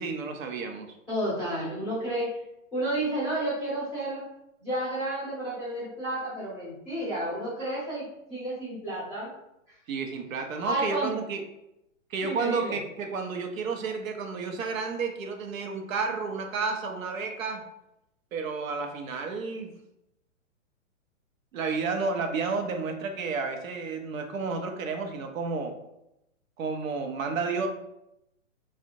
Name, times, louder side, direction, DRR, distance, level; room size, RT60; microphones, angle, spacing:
voice 1, 0.0-0.9 9.9-11.4 12.1-17.7 18.3-19.7 21.5-25.8 26.6-27.7, right 4 dB, 85° right, 4 dB, 0.6 m, -31 dB
voice 2, 1.1-2.3 2.7-4.2 4.6-9.3 10.6-11.1 12.2-12.8, right 1 dB, ahead, -14 dB, 0.5 m, -31 dB
2.5 x 2.0 x 2.6 m, 0.85 s
hypercardioid pair, 170°, 40 cm